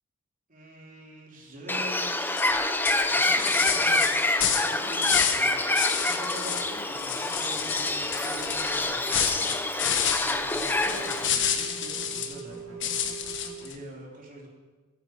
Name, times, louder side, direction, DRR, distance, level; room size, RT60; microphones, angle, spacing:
voice 1, 0.5-2.1 2.7-4.2 4.5-9.6 10.1-14.5, right 2 dB, 40° right, -1 dB, 3.3 m, -45 dB
Bird, 1.7-11.3, left 2 dB, 10° left, 0.7 m, -27 dB
sound 1, 2.4-2.5 2.8-5.5 5.7-6.7 7.0-12.4 12.8-13.7, left 8 dB, 60° left, 1.4 m, -29 dB
sound 2, 3.0-13.7, right 5 dB, 75° right, 3.5 m, -45 dB
23.0 x 9.2 x 5.1 m, 1.3 s
head